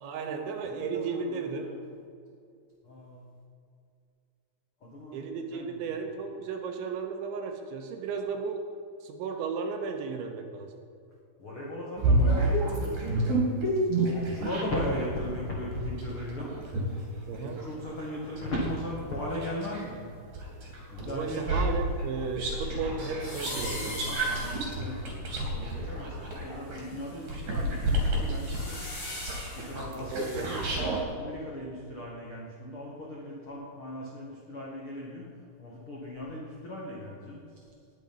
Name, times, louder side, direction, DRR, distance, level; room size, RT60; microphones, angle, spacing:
voice 1, 0.0-1.7 5.1-8.6 9.0-10.7 17.3-17.6 21.1-24.0 30.0-30.5, right 5 dB, 80° right, 4 dB, 3.2 m, -34 dB
voice 2, 0.7-1.8 2.8-3.3 4.8-5.9 11.4-13.3 13.7-16.5 16.8-17.0 17.4-20.0 20.6-21.7 24.0-28.8 29.5-30.5 31.1-35.2 35.6-37.6, left 1 dB, 80° left, -4 dB, 1.2 m, -38 dB
sound 1, 12.0-15.0 15.5-19.9 20.3-31.0, right 1 dB, 45° right, 3.8 m, -30 dB
sound 2, 23.2-26.1 26.7-30.6, left 1 dB, 35° left, 4.9 m, -42 dB
19.5 x 7.9 x 5.4 m, 2.4 s
omnidirectional pair, 5.7 m